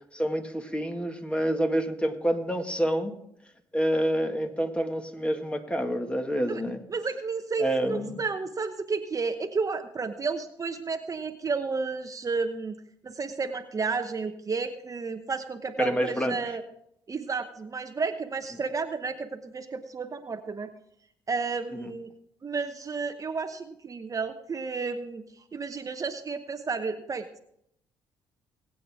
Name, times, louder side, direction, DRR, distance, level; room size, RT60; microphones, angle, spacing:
voice 1, 0.1-3.1 3.7-6.8 7.6-8.2 15.8-16.4 21.7-21.9, equal, 10° left, 5 dB, 2.0 m, -28 dB
voice 2, 6.9-12.8 13.0-16.6 17.1-20.7 21.3-22.1 22.4-27.4, right 4 dB, 35° right, 7 dB, 1.0 m, -32 dB
20.0 x 8.7 x 3.6 m, 0.74 s
supercardioid pair, 65°, 10 cm